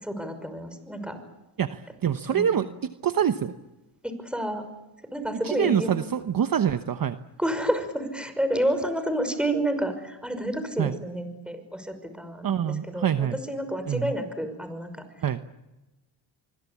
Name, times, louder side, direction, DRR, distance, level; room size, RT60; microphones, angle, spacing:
voice 1, 0.0-1.2 2.3-2.6 4.0-4.7 5.1-6.0 7.4-15.1, right 1 dB, ahead, 9 dB, 5.7 m, -30 dB
voice 2, 1.6-3.5 5.4-7.2 10.8-10.9 12.4-13.4 13.9-14.1 15.2-15.4, right 9 dB, 45° right, 10 dB, 1.1 m, -25 dB
25.5 x 22.0 x 8.5 m, 1.0 s
cardioid pair, 80°, 48 cm